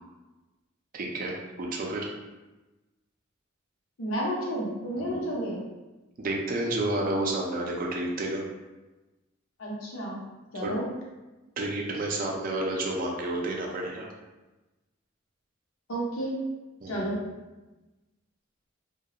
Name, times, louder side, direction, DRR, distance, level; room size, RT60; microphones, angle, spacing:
voice 1, 0.9-2.1 5.0-5.2 6.2-8.4 10.6-10.7 11.6-14.1 16.8-17.1, right 2 dB, 45° right, -1 dB, 0.4 m, -30 dB
voice 2, 4.0-5.6 9.6-10.2 10.5-10.8 15.9-16.4 16.9-17.2, right 1 dB, 90° left, -3 dB, 0.7 m, -31 dB
2.3 x 2.2 x 2.8 m, 1.1 s
head